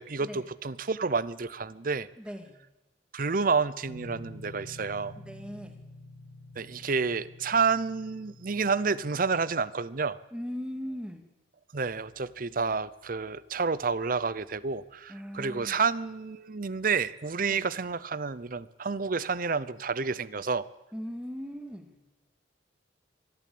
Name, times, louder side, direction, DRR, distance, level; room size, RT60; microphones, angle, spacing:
voice 1, 0.0-2.1 3.1-5.2 6.6-10.2 11.7-20.7, right 5 dB, 50° right, 18 dB, 0.7 m, -29 dB
voice 2, 2.2-2.6 5.2-5.8 10.3-11.2 15.1-15.8 17.5-17.7 20.9-22.0, equal, 5° right, 5 dB, 2.1 m, -39 dB
sound 1, 3.8-9.4, left 1 dB, 80° left, 4.5 m, -48 dB
24.0 x 12.5 x 8.6 m, 1.0 s
head